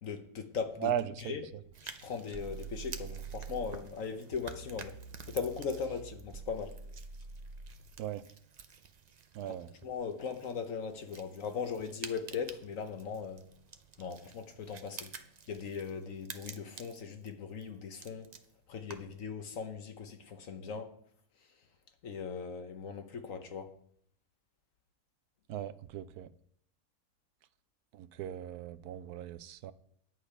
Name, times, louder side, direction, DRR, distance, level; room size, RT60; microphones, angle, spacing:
voice 1, 0.0-0.9 1.2-1.5 1.8-5.0 5.3-6.7 9.5-9.6 9.8-13.5 14.0-15.1 15.5-18.3 18.7-20.9 22.0-23.7, left 6 dB, 60° left, 1.3 m, -39 dB
voice 2, 0.8-1.3 8.0-8.2 9.3-9.7 25.5-26.3 27.9-29.7, right 10 dB, 80° right, 1.1 m, -37 dB
sound 1, 1.7-19.2, right 6 dB, 60° right, 0.4 m, -51 dB
sound 2, 2.3-3.8 4.3-7.8, right 5 dB, 40° right, 1.0 m, -46 dB
9.8 x 8.5 x 4.9 m
omnidirectional pair, 1.7 m